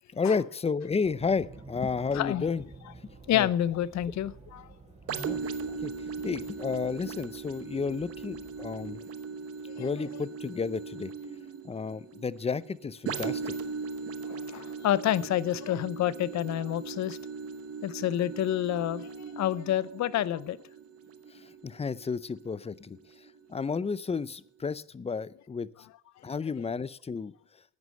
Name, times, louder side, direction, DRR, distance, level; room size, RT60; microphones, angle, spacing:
voice 1, 0.1-2.6 3.0-3.5 5.2-5.4 5.8-5.9 6.2-9.0 9.8-11.1 11.6-13.5 21.3-23.0 23.5-25.7 26.2-27.3, left 5 dB, 20° left, 19 dB, 0.5 m, -32 dB
sound 1, 1.0-9.0, right 3 dB, 20° right, 3.2 m, -52 dB
voice 2, 2.1-2.5 3.3-4.7 5.7-5.8 9.8-9.9 14.2-17.2 17.8-19.1 19.4-20.6, left 12 dB, 65° left, 19 dB, 0.7 m, -28 dB
sound 2, 5.1-22.6 23.1-23.3, right 5 dB, 50° right, 1.0 m, -39 dB
10.5 x 9.6 x 7.6 m, 0.65 s
cardioid pair, 90°, 30 cm